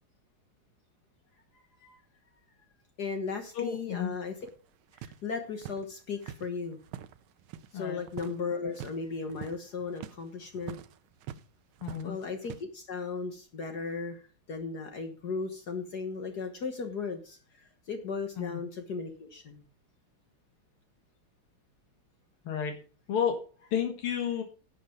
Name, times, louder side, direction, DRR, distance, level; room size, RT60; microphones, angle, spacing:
voice 1, 3.0-4.3 4.9-6.8 7.7-10.8 12.0-14.2 14.5-19.6, left 4 dB, 50° left, 6 dB, 1.7 m, -36 dB
voice 2, 3.5-4.1 7.7-8.0 11.8-12.1 18.4-18.6 22.5-22.8 23.1-23.4 23.7-24.4, left 8 dB, 85° left, 4 dB, 2.5 m, -31 dB
sound 1, 4.4-7.8 8.0-8.4 8.7-9.0 9.3-11.5 11.7-12.6, right 10 dB, 75° right, 1.5 m, -45 dB
11.0 x 7.7 x 5.2 m, 0.38 s
omnidirectional pair, 2.3 m